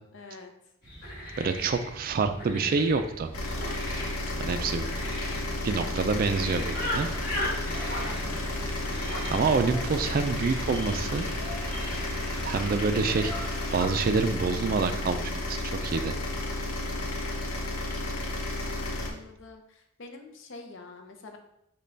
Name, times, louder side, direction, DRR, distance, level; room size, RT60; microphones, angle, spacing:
voice 1, 0.1-0.5 8.0-8.5 18.5-21.4, left 3 dB, 60° left, 4 dB, 0.6 m, -46 dB
sound 1, 0.8-13.3, left 1 dB, 45° left, 1.5 m, -38 dB
voice 2, 1.4-3.3 4.4-4.8 5.3-7.1 9.2-11.3 12.4-16.2, right 4 dB, 45° right, 9 dB, 0.3 m, -27 dB
sound 2, 3.3-19.1, left 1 dB, 90° left, 0.8 m, -32 dB
sound 3, 6.8-13.9, left 1 dB, 10° left, 0.8 m, -41 dB
5.3 x 2.3 x 3.9 m, 0.79 s
head